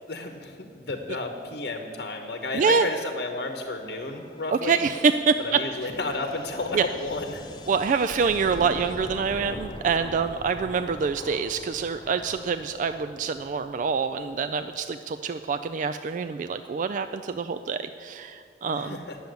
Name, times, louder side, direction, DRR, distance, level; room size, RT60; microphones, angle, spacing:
voice 1, 0.1-4.8 5.5-7.4 18.7-19.2, left 2 dB, 60° left, 4 dB, 0.9 m, -32 dB
sound 1, 2.1-15.5, left 1 dB, 25° left, 0.8 m, -44 dB
voice 2, 2.5-2.9 4.5-5.6 6.7-6.9 7.7-19.0, right 5 dB, 45° right, 10 dB, 0.3 m, -26 dB
10.5 x 7.0 x 9.2 m, 2.3 s
head